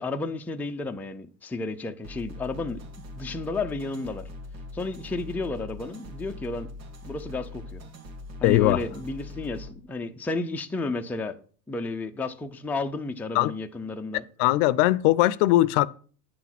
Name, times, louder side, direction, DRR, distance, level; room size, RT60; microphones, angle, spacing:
voice 1, 0.0-2.8 3.2-4.3 4.7-6.7 7.0-7.8 8.4-11.4 11.7-14.3, left 3 dB, 5° left, 0.5 m, -32 dB
sound 1, 2.0-9.7, left 2 dB, 90° right, 2.8 m, -41 dB
voice 2, 8.4-8.8 13.3-13.5 14.4-15.9, left 17 dB, 65° left, 0.6 m, -20 dB
9.9 x 6.0 x 6.0 m
supercardioid pair, 120°, 49 cm